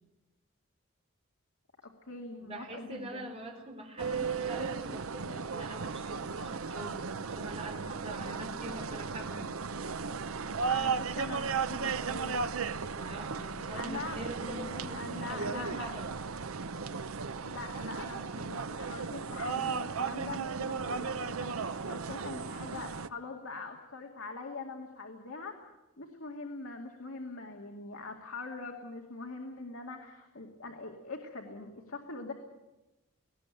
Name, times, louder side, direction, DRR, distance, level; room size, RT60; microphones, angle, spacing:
voice 1, 1.8-3.3 10.7-12.4 13.7-15.9 17.4-32.3, left 3 dB, 75° left, 2 dB, 2.3 m, -43 dB
voice 2, 2.4-9.8 12.9-16.1, right 1 dB, 30° right, 2 dB, 3.5 m, -44 dB
sound 1, 4.0-23.1, right 5 dB, 80° right, 0.7 m, -35 dB
19.0 x 17.5 x 9.1 m, 1.0 s
head